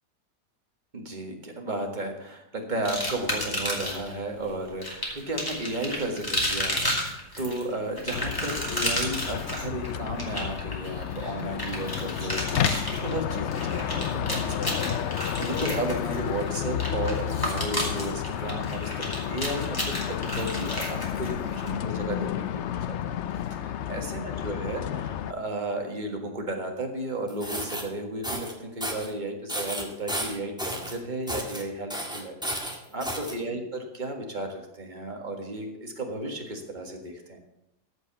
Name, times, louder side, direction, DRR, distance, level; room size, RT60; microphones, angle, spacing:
voice 1, 0.9-23.1 23.5-32.6 32.9-37.4, right 1 dB, 30° right, 2 dB, 1.8 m, -34 dB
sound 1, 2.9-4.1 4.8-21.7, equal, 10° left, 2.5 m, -32 dB
sound 2, 8.1-25.3, left 9 dB, 75° left, 0.6 m, -31 dB
sound 3, 27.3-27.8 28.2-28.5 28.8-29.1 29.5-30.9 31.3-31.6 31.9-33.3, equal, 5° right, 1.5 m, -32 dB
14.5 x 5.4 x 6.9 m, 0.88 s
omnidirectional pair, 1.8 m